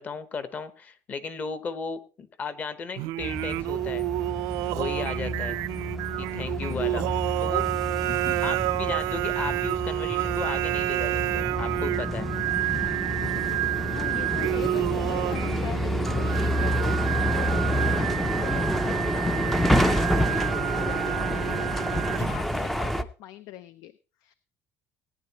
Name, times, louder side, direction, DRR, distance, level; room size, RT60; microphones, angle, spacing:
voice 1, 0.0-4.1 4.7-5.6 6.2-7.1 7.4-7.7 8.4-12.3, left 5 dB, 25° left, 13 dB, 0.9 m, -35 dB
Singing, 3.0-22.6, right 18 dB, 75° right, 0.5 m, -29 dB
sound 1, 3.2-23.0, equal, 5° left, 0.5 m, -29 dB
voice 2, 6.7-7.2 8.1-8.5 13.6-24.3, left 13 dB, 70° left, 14 dB, 0.6 m, -42 dB
18.0 x 9.9 x 2.9 m, 0.35 s
cardioid pair, 180°, 6 cm